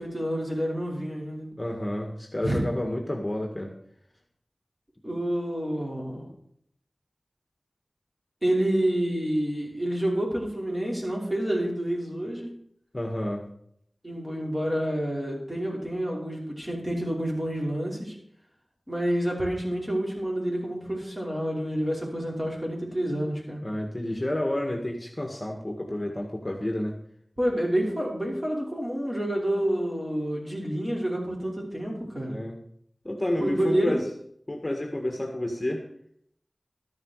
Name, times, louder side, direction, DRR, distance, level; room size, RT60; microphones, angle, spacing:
voice 1, 0.0-1.5 2.4-2.6 5.0-6.3 8.4-12.5 14.0-18.1 18.9-23.6 27.4-32.4 33.4-34.0, right 1 dB, 20° right, -3 dB, 5.5 m, -28 dB
voice 2, 1.6-3.7 12.9-13.5 23.6-27.0 32.2-32.6 33.1-34.0 34.5-35.8, left 1 dB, 25° left, 2 dB, 1.8 m, -30 dB
13.0 x 11.0 x 4.8 m, 0.67 s
wide cardioid pair, 50°, 0 cm